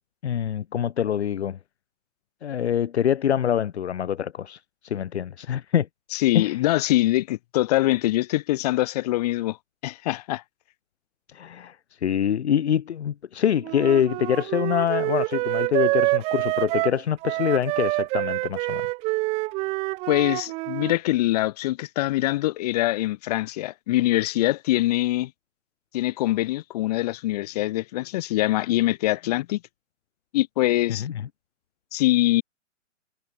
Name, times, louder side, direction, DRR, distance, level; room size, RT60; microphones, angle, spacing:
voice 1, 0.2-1.6 2.4-5.9 6.3-6.6 11.3-11.8 12.0-18.9 31.0-31.1, left 9 dB, 55° left, 1.9 m, -25 dB
voice 2, 6.1-9.6 9.8-10.4 20.1-25.3 25.9-29.6 30.3-31.0 31.9-32.4, left 17 dB, 30° left, 5.9 m, -23 dB
Wind instrument woodwind instrument, 13.6-20.9, right 23 dB, 15° right, 1.8 m, -26 dB
hypercardioid pair, 170°, 39 cm